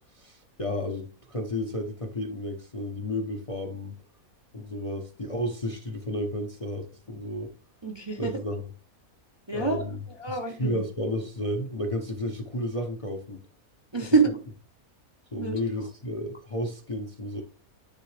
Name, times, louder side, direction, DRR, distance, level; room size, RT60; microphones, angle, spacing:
voice 1, 0.2-3.9 4.5-7.5 8.2-8.6 9.5-10.0 10.3-13.4 15.3-17.4, left 1 dB, 30° left, 0.8 m, -32 dB
voice 2, 7.8-8.4 9.5-9.9 10.2-10.8 13.9-14.3 15.3-15.6, right 4 dB, 25° right, 0.7 m, -26 dB
10.0 x 3.8 x 3.3 m
omnidirectional pair, 1.5 m